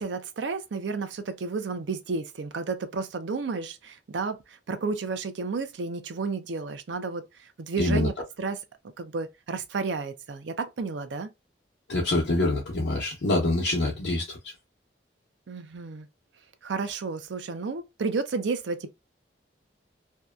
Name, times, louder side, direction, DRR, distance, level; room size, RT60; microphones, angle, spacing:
voice 1, 0.0-8.6 9.0-11.3 15.5-16.1 16.6-18.9, right 4 dB, 80° right, 0.5 m, -32 dB
voice 2, 7.8-8.1 11.9-14.5, left 2 dB, 75° left, 0.8 m, -25 dB
2.7 x 2.2 x 2.3 m
head